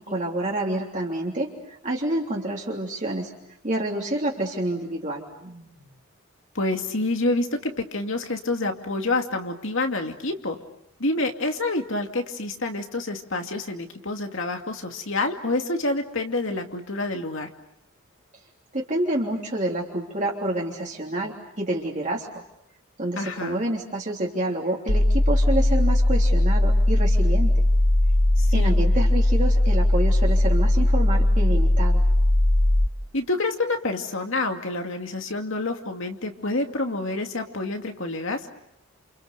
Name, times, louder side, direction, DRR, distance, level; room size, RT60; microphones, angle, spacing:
voice 1, 0.0-3.3 3.6-5.8 18.7-22.4 23.0-27.5 28.5-32.0, right 1 dB, 35° right, -2 dB, 3.3 m, -28 dB
voice 2, 6.5-10.6 11.0-17.5 23.2-23.6 28.4-28.8 33.1-38.5, left 2 dB, 60° left, 4 dB, 2.5 m, -28 dB
sound 1, 24.9-32.9, left 1 dB, 40° left, 1.3 m, -19 dB
30.0 x 29.0 x 6.7 m, 0.78 s
head